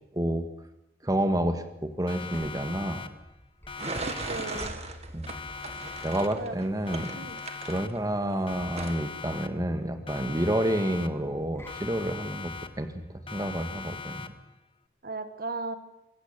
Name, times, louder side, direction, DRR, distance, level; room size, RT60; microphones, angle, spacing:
voice 1, 0.1-0.5 1.0-3.1 5.1-5.4 6.0-7.1 7.6-12.5 12.8-12.9 13.3-14.3, right 1 dB, 20° right, 8 dB, 1.7 m, -29 dB
sound 1, 1.9-13.8, equal, 15° left, 2.8 m, -50 dB
Siren, 2.1-3.4 3.7-5.0 5.3-6.6 6.9-8.2 8.5-9.8 10.1-11.4 11.7-13.0 13.3-14.6, left 5 dB, 30° left, 1.2 m, -41 dB
sound 2, 3.8-8.3 8.7-9.0, right 3 dB, 40° right, 2.1 m, -38 dB
voice 2, 4.0-4.8 6.4-6.5 7.1-7.4 15.0-15.7, right 3 dB, 55° right, 10 dB, 1.7 m, -36 dB
24.5 x 16.0 x 8.3 m, 0.86 s
head